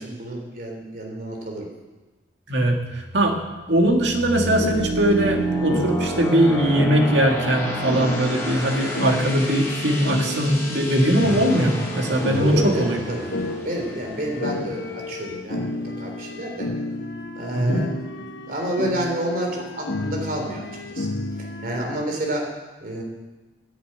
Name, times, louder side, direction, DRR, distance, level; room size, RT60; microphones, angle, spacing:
voice 1, 0.0-1.7 12.3-13.3 13.6-16.7 17.3-17.9 18.5-21.1 21.6-22.5 22.8-23.0, right 1 dB, 50° right, 1 dB, 3.4 m, -29 dB
voice 2, 2.5-3.4 3.7-13.0 17.5-17.8, right 1 dB, 85° right, 2 dB, 2.0 m, -20 dB
sound 1, 2.7-15.3, right 1 dB, 15° left, 4.2 m, -30 dB
sound 2, 4.6-22.0, left 2 dB, 85° left, 1.2 m, -32 dB
10.5 x 10.0 x 8.8 m, 1.2 s
head